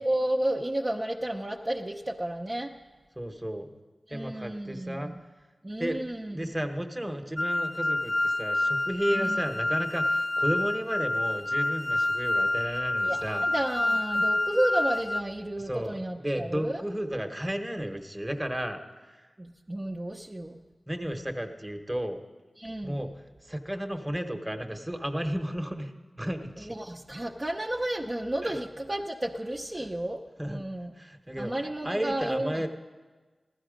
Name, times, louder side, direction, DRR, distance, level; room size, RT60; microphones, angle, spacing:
voice 1, 0.0-2.7 4.1-5.1 5.6-6.5 9.1-9.4 13.0-16.8 19.4-20.6 22.6-23.0 26.6-30.9 31.4-32.7, right 1 dB, 30° right, -1 dB, 0.7 m, -32 dB
voice 2, 3.2-3.7 4.1-5.1 5.8-6.0 6.3-13.5 15.6-18.8 20.9-22.2 22.8-23.1 23.4-26.7 28.4-28.6 30.4-30.6 31.0-32.7, equal, 15° right, 5 dB, 1.1 m, -33 dB
sound 1, 7.4-15.2, left 1 dB, 25° left, 0.3 m, -28 dB
15.0 x 12.0 x 5.1 m, 1.3 s
cardioid pair, 50°, 0 cm